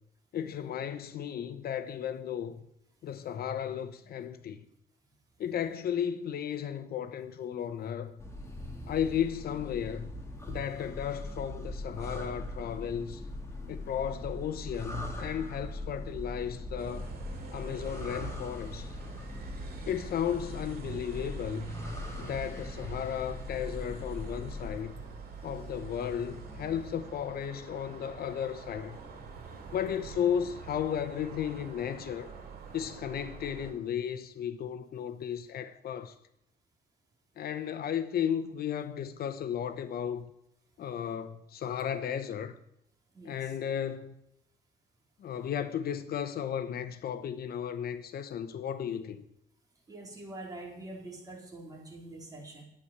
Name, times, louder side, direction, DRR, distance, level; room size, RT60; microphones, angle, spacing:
voice 1, 0.3-2.6 3.0-4.7 5.4-8.1 8.9-10.1 10.5-13.2 13.7-17.1 17.5-18.9 19.9-21.7 22.2-24.9 25.4-29.0 29.7-32.3 32.7-36.1 37.4-40.3 40.8-42.6 43.2-44.1 45.2-49.2, left 9 dB, 70° left, 0.9 m, -34 dB
sound 1, 8.2-24.8, left 1 dB, 15° left, 2.7 m, -41 dB
voice 2, 8.5-8.9 43.1-43.5 49.9-52.6, right 2 dB, 20° right, 3.9 m, -45 dB
sound 2, 16.8-33.7, right 4 dB, 70° right, 3.8 m, -46 dB
12.0 x 9.8 x 6.7 m
cardioid pair, 135°, 16 cm